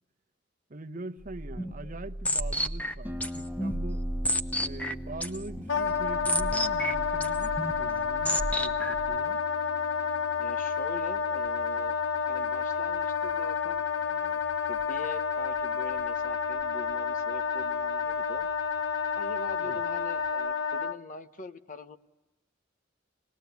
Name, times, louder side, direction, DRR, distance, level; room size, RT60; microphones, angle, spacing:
voice 1, 0.7-4.0 4.6-9.4 19.6-19.8, right 2 dB, 45° right, 1.0 m, -42 dB
sound 1, 1.2-9.2, equal, 10° left, 0.9 m, -32 dB
voice 2, 1.6-2.0 10.4-12.0 12.3-14.4 14.7-18.5 19.1-22.0, left 2 dB, 45° left, 1.1 m, -43 dB
Harp, 3.0-20.5, left 1 dB, 10° right, 1.0 m, -46 dB
Wind instrument woodwind instrument, 5.7-21.0, left 6 dB, 85° left, 1.0 m, -30 dB
26.5 x 20.0 x 8.2 m
head